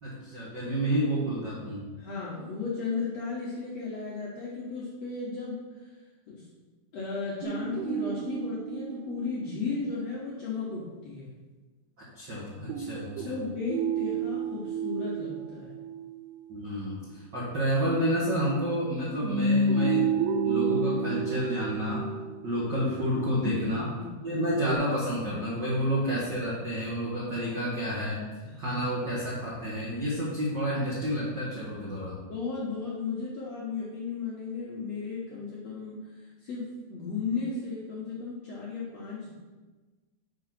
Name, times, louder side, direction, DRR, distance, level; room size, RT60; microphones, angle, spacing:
voice 1, 0.0-1.9 12.0-13.4 16.5-20.1 20.4-22.0 22.4-23.9 24.2-28.3 28.6-32.2, equal, 60° right, -7 dB, 1.1 m, -30 dB
voice 2, 2.0-5.6 6.3-6.4 6.9-11.3 13.2-15.7 23.3-24.4 28.4-28.8 32.3-39.3, left 4 dB, 60° left, -6 dB, 1.8 m, -35 dB
sound 1, 7.4-10.1 12.7-16.5 19.2-22.9 24.6-24.8, right 4 dB, 90° right, 2.8 m, -30 dB
6.0 x 5.4 x 6.0 m, 1.3 s
omnidirectional pair, 4.5 m